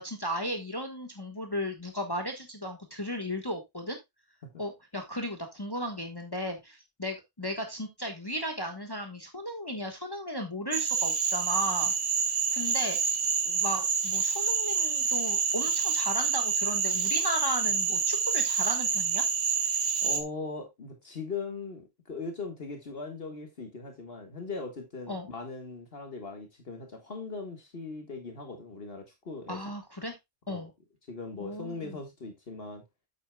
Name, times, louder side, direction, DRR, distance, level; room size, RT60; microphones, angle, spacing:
voice 1, 0.0-4.0 4.6-11.9 12.5-13.0 13.5-19.2 25.1-25.3 29.5-30.2 30.5-30.7 31.4-32.0, equal, 20° left, 1.4 m, -35 dB
Cricket / Frog, 10.7-20.2, right 5 dB, 90° right, 1.4 m, -27 dB
voice 2, 20.0-29.6 30.5-30.7 31.1-32.8, left 4 dB, 65° left, 1.8 m, -39 dB
8.5 x 8.4 x 2.2 m
omnidirectional pair, 1.1 m